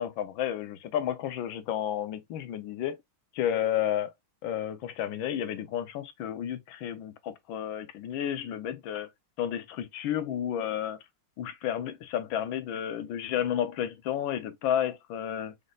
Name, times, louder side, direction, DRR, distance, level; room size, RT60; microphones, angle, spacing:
voice 1, 0.0-3.0 3.3-4.1 4.4-9.1 9.4-11.0 11.4-15.5, left 10 dB, 70° left, 1.5 m, -31 dB
5.1 x 3.7 x 2.4 m
omnidirectional pair, 2.3 m